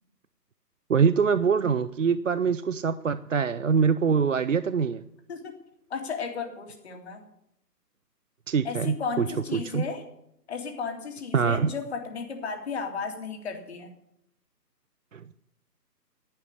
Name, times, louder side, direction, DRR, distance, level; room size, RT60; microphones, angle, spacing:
voice 1, 0.9-5.0 8.5-9.3 9.5-9.8 11.3-11.7 15.1-15.2, right 6 dB, 50° right, 14 dB, 0.5 m, -24 dB
voice 2, 5.9-7.2 8.6-10.0 10.5-13.9, left 5 dB, 40° left, 3 dB, 2.6 m, -34 dB
11.5 x 8.5 x 9.7 m, 0.77 s
figure-of-eight pair, 155°, 49 cm